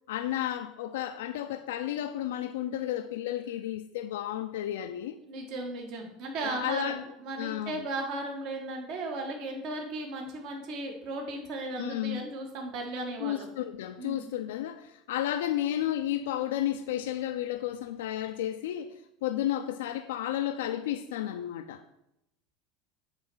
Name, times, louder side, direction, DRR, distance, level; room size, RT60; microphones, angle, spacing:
voice 1, 0.1-5.2 6.4-7.0 7.4-7.8 11.8-12.2 13.2-18.9 19.2-21.8, left 12 dB, 90° left, 8 dB, 0.4 m, -32 dB
voice 2, 5.2-6.9 7.2-13.5 14.0-14.2, right 2 dB, 60° right, 2 dB, 1.5 m, -36 dB
8.1 x 3.2 x 6.1 m, 0.84 s
supercardioid pair, 115°, 0 cm